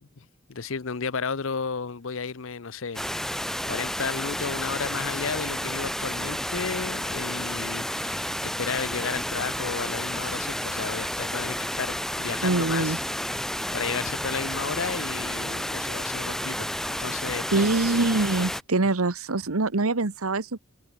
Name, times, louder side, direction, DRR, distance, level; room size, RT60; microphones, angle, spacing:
voice 1, 0.0-3.1 3.6-8.3 8.6-12.9 13.7-17.7, left 5 dB, 70° left, 0.8 m, -33 dB
sound 1, 2.9-18.6, equal, ahead, 1.2 m, -31 dB
voice 2, 12.4-13.0 17.5-20.6, right 3 dB, 85° right, 1.3 m, -24 dB
head